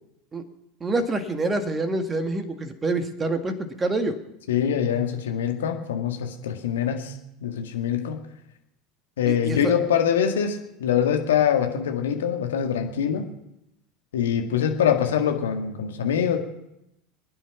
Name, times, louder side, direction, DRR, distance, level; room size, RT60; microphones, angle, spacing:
voice 1, 0.8-4.2 9.3-9.7, right 2 dB, 20° right, 7 dB, 1.8 m, -26 dB
voice 2, 4.5-8.2 9.2-13.3 14.1-16.4, left 8 dB, 70° left, 4 dB, 1.9 m, -24 dB
24.5 x 9.9 x 5.8 m, 0.84 s
figure-of-eight pair, 75°, 0 cm